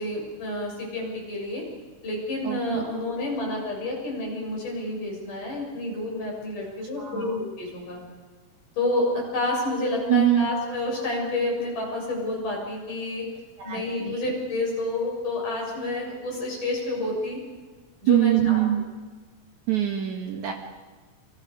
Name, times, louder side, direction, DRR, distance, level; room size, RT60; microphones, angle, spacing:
voice 1, 0.0-1.6 2.0-8.0 8.8-13.2 13.6-17.4 18.0-18.6, left 2 dB, 65° left, -2 dB, 9.1 m, -29 dB
voice 2, 2.4-2.8 7.0-7.3 10.1-10.5 13.6-14.2 18.1-18.9 19.7-20.5, right 12 dB, 65° right, 2 dB, 2.8 m, -23 dB
29.5 x 26.5 x 5.0 m, 1.4 s
omnidirectional pair, 3.9 m